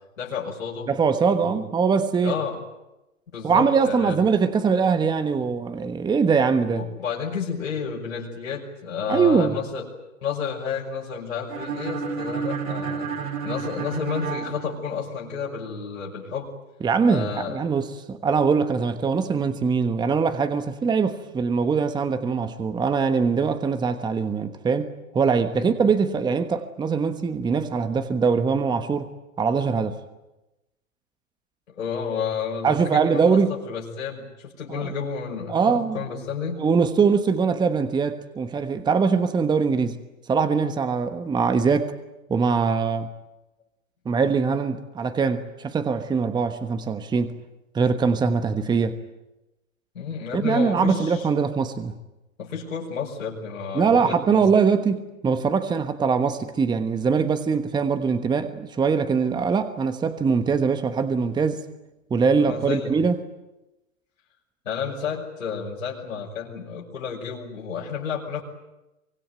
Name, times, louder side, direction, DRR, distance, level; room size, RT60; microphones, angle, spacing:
voice 1, 0.2-0.9 1.3-1.6 2.2-2.6 3.3-4.2 6.7-9.9 10.2-13.1 13.4-16.5 17.1-17.6 25.6-25.9 31.7-33.4 33.7-36.6 49.9-51.3 52.4-54.4 62.4-63.0 64.6-68.4, left 6 dB, 75° left, 6.0 m, -31 dB
voice 2, 0.9-2.3 3.4-6.9 9.1-9.6 16.8-29.1 29.4-30.0 32.6-33.6 34.7-34.9 35.5-36.0 36.6-40.0 40.3-41.9 42.3-43.1 44.0-47.3 47.7-49.0 50.3-51.9 53.7-61.6 62.1-63.2, right 5 dB, 10° right, 1.2 m, -22 dB
sound 1, 11.5-15.4, right 6 dB, 75° right, 3.8 m, -31 dB
24.5 x 24.0 x 9.2 m
hypercardioid pair, 115°, 41 cm